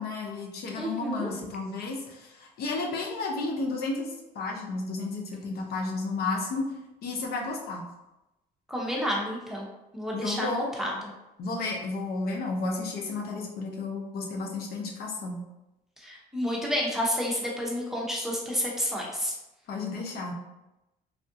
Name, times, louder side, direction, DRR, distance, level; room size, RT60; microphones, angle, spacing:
voice 1, 0.0-6.7 7.0-7.9 10.1-10.8 11.4-15.4 19.7-20.3, left 3 dB, 65° left, 0 dB, 0.7 m, -32 dB
voice 2, 0.8-1.3 8.7-9.7 9.9-11.1 16.0-19.3, equal, ahead, -4 dB, 0.8 m, -30 dB
3.5 x 2.4 x 2.7 m, 0.94 s
cardioid pair, 110°, 17 cm